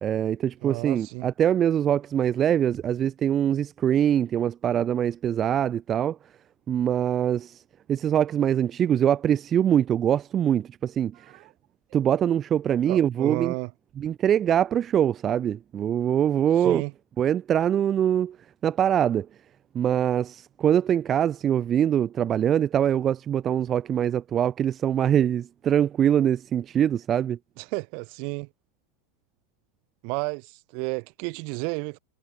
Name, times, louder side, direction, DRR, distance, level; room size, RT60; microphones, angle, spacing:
voice 1, 0.0-6.2 6.7-7.6 7.9-11.3 11.9-13.5 14.0-16.8 17.2-18.4 18.6-19.3 19.7-27.4, right 9 dB, 25° right, 1.3 m, -23 dB
voice 2, 0.6-1.3 11.3-11.4 12.8-13.7 16.6-16.9 27.6-28.5 30.0-32.0, right 40 dB or more, 45° right, 2.1 m, -32 dB
figure-of-eight pair, 90°, 0 cm